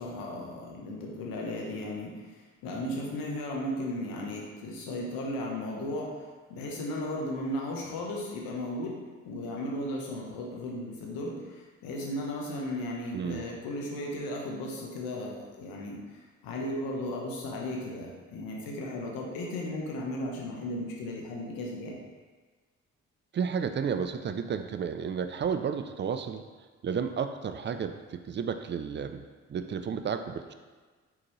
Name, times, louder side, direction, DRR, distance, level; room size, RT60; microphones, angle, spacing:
voice 1, 0.0-22.0, left 1 dB, 75° left, -1 dB, 1.0 m, -35 dB
voice 2, 13.1-13.5 23.3-30.5, right 6 dB, 30° right, 8 dB, 0.4 m, -32 dB
4.2 x 3.9 x 3.1 m, 1.4 s
hypercardioid pair, 40°, 36 cm